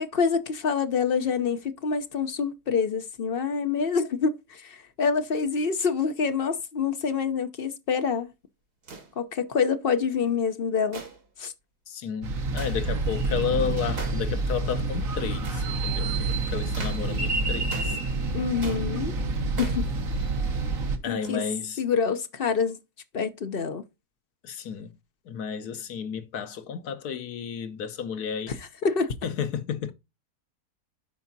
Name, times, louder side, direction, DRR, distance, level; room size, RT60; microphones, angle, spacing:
voice 1, 0.0-8.3 9.2-11.0 11.4-11.5 18.3-19.1 19.6-19.8 21.1-21.4 21.8-22.8 23.1-23.8 28.5-28.6 28.8-29.1, left 5 dB, 45° left, 0.8 m, -26 dB
sound 1, 8.8-9.1 10.9-11.3 12.6-12.8 14.0-14.3 15.4-15.7 16.7-17.1 17.7-18.0 18.6-18.9 19.5-19.9 21.2-21.5, right 4 dB, 80° right, 2.7 m, -40 dB
voice 2, 11.9-18.0 21.0-21.8 24.4-24.9 25.3-28.6 29.2-29.9, left 7 dB, 75° left, 1.4 m, -32 dB
sound 2, 12.2-21.0, right 2 dB, 60° right, 1.6 m, -28 dB
12.5 x 4.8 x 2.7 m
omnidirectional pair, 1.7 m